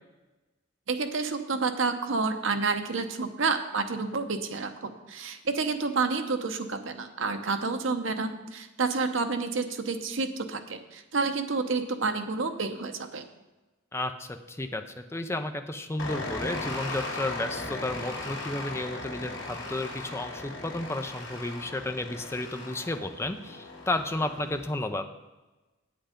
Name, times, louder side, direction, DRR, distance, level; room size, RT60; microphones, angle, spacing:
voice 1, 0.9-13.2, right 4 dB, 75° right, 7 dB, 0.9 m, -29 dB
voice 2, 13.9-25.1, left 2 dB, 15° left, 7 dB, 0.5 m, -32 dB
sound 1, 16.0-24.7, left 2 dB, 65° left, 2.3 m, -38 dB
8.5 x 7.9 x 5.1 m, 1.1 s
head